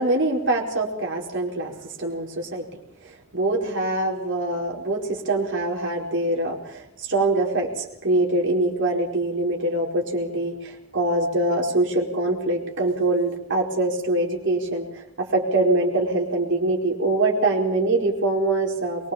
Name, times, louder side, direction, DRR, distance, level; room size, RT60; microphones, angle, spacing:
voice 1, 0.0-2.7 3.0-19.1, right 2 dB, 60° right, 0 dB, 4.7 m, -24 dB
23.5 x 21.0 x 7.2 m, 0.79 s
head